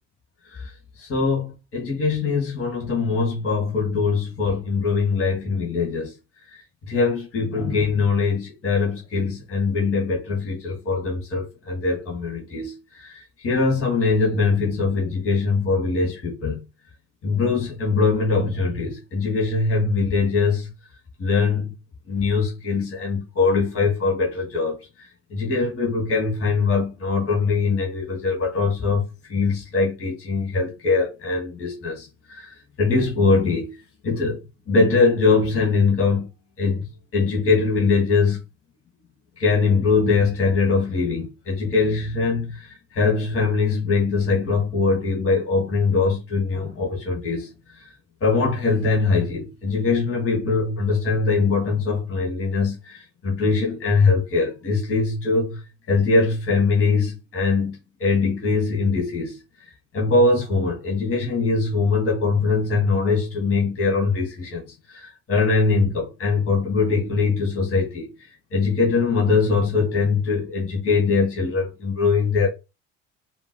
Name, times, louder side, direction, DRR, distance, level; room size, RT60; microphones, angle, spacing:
voice 1, 1.0-6.1 6.5-16.6 17.2-20.7 21.2-21.7 22.1-24.8 25.3-33.7 34.0-34.4 34.7-36.3 36.6-36.9 37.1-38.4 39.4-47.5 47.8-47.9 48.2-55.6 55.9-59.3 59.9-68.1 68.5-72.5, left 4 dB, 35° left, 2.0 m, -22 dB
5.1 x 2.8 x 2.2 m
figure-of-eight pair, 55°, 38 cm